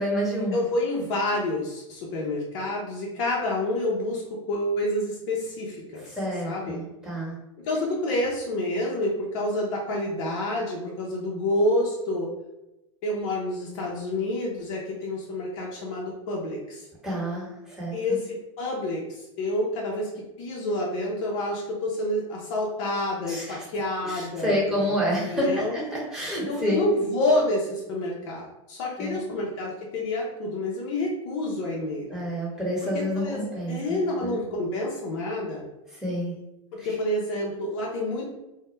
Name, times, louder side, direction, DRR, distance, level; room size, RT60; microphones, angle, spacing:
voice 1, 0.0-0.6 6.2-7.3 17.0-17.5 17.8-18.2 23.3-23.6 24.1-26.8 29.0-29.2 32.1-34.3 36.0-36.3, equal, 5° right, -6 dB, 1.1 m, -28 dB
voice 2, 0.5-4.2 4.5-6.2 6.4-6.8 7.7-12.3 13.0-16.8 17.9-20.1 20.4-25.7 26.5-32.1 32.8-35.6 36.8-38.3, left 1 dB, 60° left, -3 dB, 0.6 m, -28 dB
2.0 x 2.0 x 3.0 m, 0.93 s
hypercardioid pair, 95°, 16 cm